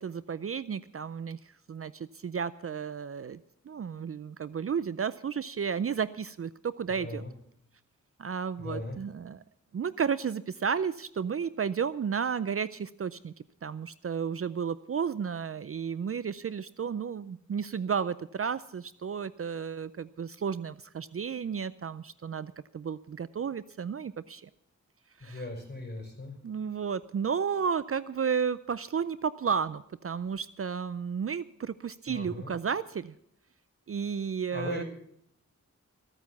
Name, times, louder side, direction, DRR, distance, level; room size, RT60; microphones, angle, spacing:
voice 1, 0.0-1.4 1.7-3.4 3.7-7.2 8.2-9.4 9.7-13.3 13.6-24.5 25.2-25.5 26.4-33.1 33.9-34.8, right 6 dB, 50° right, 16 dB, 0.5 m, -32 dB
voice 2, 7.0-7.3 8.6-9.0 25.2-26.3 32.1-32.5 34.5-34.9, left 2 dB, 35° left, 2 dB, 5.2 m, -38 dB
15.0 x 9.0 x 7.1 m, 0.71 s
wide cardioid pair, 80°, 30 cm